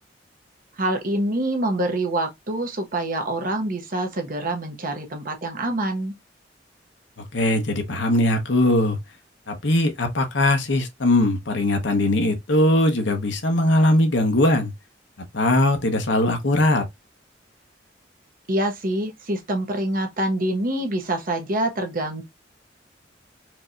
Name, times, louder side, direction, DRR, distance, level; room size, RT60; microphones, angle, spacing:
voice 1, 0.8-6.1 18.5-22.2, right 1 dB, 50° right, 1.0 m, -26 dB
voice 2, 7.3-9.0 9.5-14.7 15.3-16.8, left 1 dB, 75° left, 1.0 m, -20 dB
4.7 x 2.8 x 2.3 m
head